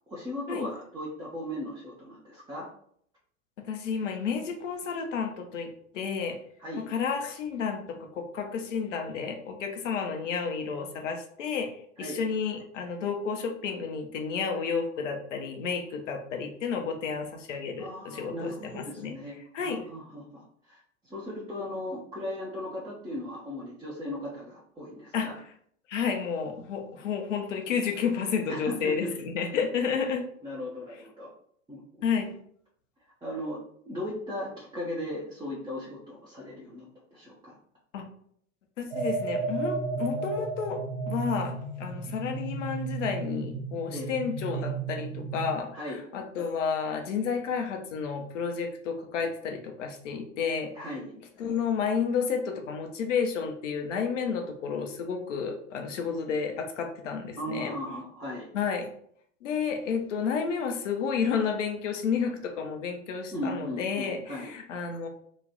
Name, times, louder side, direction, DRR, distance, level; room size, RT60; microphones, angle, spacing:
voice 1, 0.1-2.7 6.6-6.8 12.0-12.2 17.8-25.3 28.5-29.1 30.4-31.3 31.7-31.8 33.2-33.6 33.9-37.6 43.9-44.1 45.7-46.0 50.7-51.1 57.4-58.5 63.3-64.5, left 1 dB, 10° right, -6 dB, 0.8 m, -37 dB
voice 2, 3.7-6.4 6.8-11.7 12.0-19.1 19.5-19.8 25.1-25.3 25.9-30.3 32.0-32.3 37.9-38.0 38.8-50.7 51.4-57.7 58.5-58.9 59.4-65.1, left 6 dB, 65° left, 4 dB, 0.8 m, -31 dB
sound 1, 38.9-45.6, right 4 dB, 65° right, 0.8 m, -33 dB
3.0 x 2.5 x 4.0 m, 0.64 s
figure-of-eight pair, 85°, 41 cm